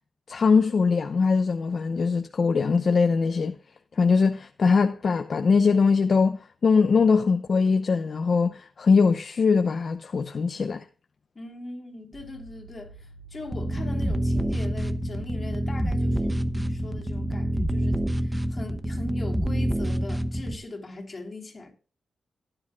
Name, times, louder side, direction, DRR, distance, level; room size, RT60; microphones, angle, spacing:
voice 1, 0.3-3.6 4.0-10.8, left 5 dB, 50° left, 0.7 m, -22 dB
voice 2, 11.3-21.7, left 2 dB, 30° left, 3.3 m, -40 dB
sound 1, 12.1-19.3, right 1 dB, 75° right, 6.4 m, -47 dB
sound 2, 13.5-20.6, equal, 10° right, 1.0 m, -27 dB
16.5 x 10.0 x 2.3 m
wide cardioid pair, 120°, 0 cm